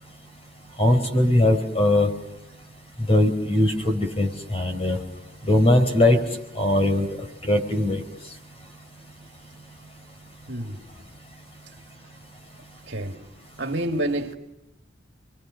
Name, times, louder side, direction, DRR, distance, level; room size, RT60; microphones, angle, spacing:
voice 1, 0.8-2.1 3.1-5.0 5.5-6.2 6.5-7.1 7.4-8.0, left 1 dB, 35° left, 4.4 m, -20 dB
voice 2, 10.5-10.8 12.9-13.2 13.6-14.3, right 1 dB, 70° right, 2.1 m, -28 dB
29.5 x 23.5 x 6.5 m
head